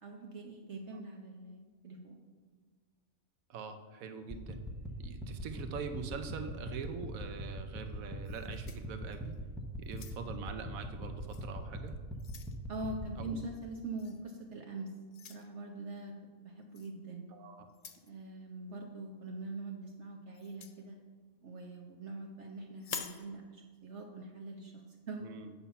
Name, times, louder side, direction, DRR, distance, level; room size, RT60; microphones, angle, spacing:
voice 1, 0.0-2.2 12.7-14.9 15.3-16.1 16.4-17.3 18.0-21.0 21.4-25.3, right 2 dB, 60° right, 1 dB, 1.1 m, -43 dB
voice 2, 3.5-4.6 5.0-9.3 9.8-12.0 13.2-13.4 17.3-17.7 25.2-25.5, right 5 dB, 80° right, 7 dB, 1.2 m, -43 dB
sound 1, 4.2-13.3, equal, ahead, 0.6 m, -42 dB
sound 2, 8.2-9.4 9.8-10.5 11.3-11.5 11.9-12.6 14.0-14.2 15.1-15.4 16.7-16.9 17.7-18.1 20.3-20.8 22.8-23.2, left 6 dB, 70° left, 0.3 m, -46 dB
8.6 x 5.7 x 5.6 m, 1.5 s
omnidirectional pair, 1.4 m